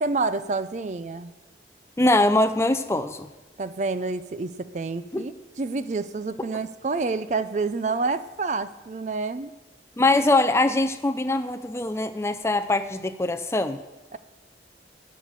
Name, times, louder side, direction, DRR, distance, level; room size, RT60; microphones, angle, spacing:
voice 1, 0.0-1.3 3.6-5.3 5.6-9.5 14.1-14.2, right 3 dB, 40° right, 13 dB, 0.4 m, -28 dB
voice 2, 2.0-3.3 5.1-5.2 10.0-13.8, left 2 dB, 15° left, 9 dB, 0.5 m, -22 dB
11.5 x 6.3 x 8.2 m, 1.1 s
head